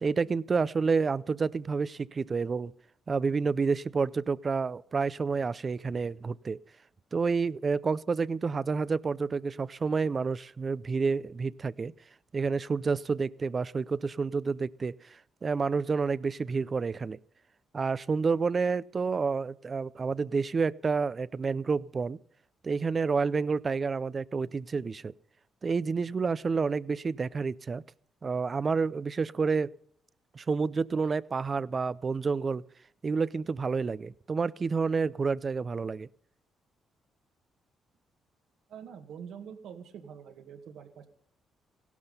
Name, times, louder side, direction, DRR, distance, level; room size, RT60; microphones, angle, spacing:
voice 1, 0.0-2.7 3.1-6.6 7.1-11.9 12.3-17.2 17.7-22.2 22.6-25.1 25.6-27.8 28.2-29.7 30.3-32.6 33.0-36.1, right 4 dB, 35° right, 20 dB, 0.5 m, -29 dB
voice 2, 38.7-41.1, right 7 dB, 80° right, 6 dB, 2.1 m, -45 dB
16.5 x 12.0 x 5.5 m, 0.65 s
cardioid pair, 90°, 0 cm